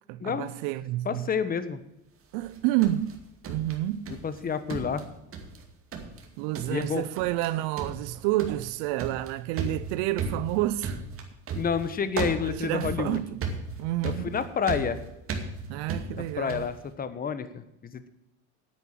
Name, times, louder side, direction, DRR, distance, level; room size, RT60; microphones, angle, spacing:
voice 1, 0.1-1.3 2.3-3.2 3.5-4.1 6.4-11.0 12.5-13.4 13.8-14.4 15.7-16.6, right 15 dB, 75° right, 0.6 m, -29 dB
voice 2, 1.0-1.8 4.2-5.1 6.7-7.1 11.5-13.2 14.0-15.0 16.4-18.1, left 6 dB, 25° left, 1.2 m, -29 dB
sound 1, 2.4-4.4 4.7-5.6 5.9-6.3 6.5-6.9 7.2-7.5 7.8-16.8, right 4 dB, 40° right, 2.3 m, -35 dB
9.9 x 9.3 x 7.7 m
cardioid pair, 125°, 34 cm